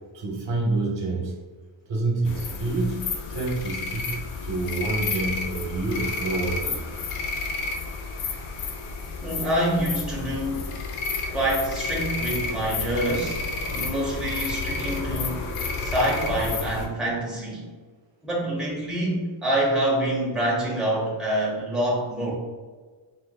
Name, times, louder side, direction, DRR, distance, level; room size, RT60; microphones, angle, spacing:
voice 1, 0.1-1.3 1.9-3.0 3.3-6.8, right 2 dB, 60° right, -1 dB, 0.9 m, -27 dB
sound 1, 2.3-16.9, left 4 dB, 85° left, 0.7 m, -31 dB
voice 2, 9.2-10.7 11.3-15.5 15.8-17.7 18.2-22.3, right 1 dB, ahead, -6 dB, 0.9 m, -26 dB
4.2 x 3.3 x 2.2 m, 1.4 s
wide cardioid pair, 145°, 50 cm